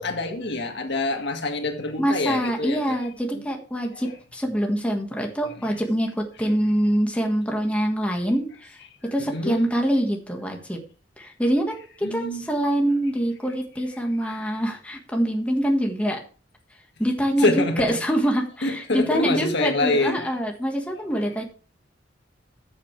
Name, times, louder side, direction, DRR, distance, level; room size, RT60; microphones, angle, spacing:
voice 1, 0.0-3.0 3.3-3.4 3.9-4.0 5.6-5.8 9.2-9.7 12.0-12.4 17.4-18.0 18.6-20.3, left 2 dB, 65° left, 1.9 m, -26 dB
voice 2, 2.0-8.8 9.1-10.8 11.2-16.2 17.0-21.4, equal, 5° left, 1.6 m, -25 dB
13.5 x 7.4 x 3.3 m
head